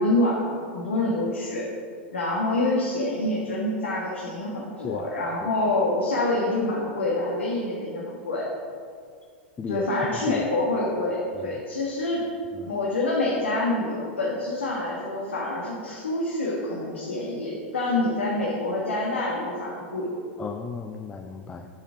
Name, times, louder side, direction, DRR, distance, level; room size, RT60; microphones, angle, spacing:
voice 1, 0.0-1.7 2.1-8.4 9.7-12.2 12.6-20.1, left 2 dB, 75° left, -4 dB, 1.6 m, -26 dB
voice 2, 10.1-10.4 11.4-11.6 12.6-12.7 20.4-21.7, left 5 dB, 15° left, 5 dB, 0.5 m, -35 dB
8.4 x 7.2 x 5.0 m, 2.2 s
figure-of-eight pair, 90°, 6 cm